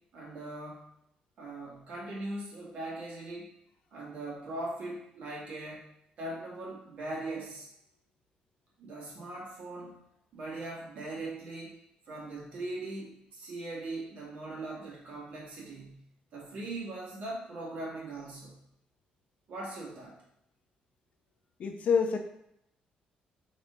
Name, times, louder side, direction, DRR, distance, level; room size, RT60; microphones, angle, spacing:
voice 1, 0.1-0.8 1.4-3.5 3.9-5.9 6.2-7.7 8.8-10.0 10.3-11.8 12.1-16.0 16.3-18.6 19.5-20.2, right 2 dB, 55° right, -5 dB, 2.5 m, -40 dB
voice 2, 21.6-22.2, left 6 dB, 50° left, 5 dB, 0.7 m, -26 dB
4.9 x 4.2 x 5.4 m, 0.76 s
cardioid pair, 165°, 3 cm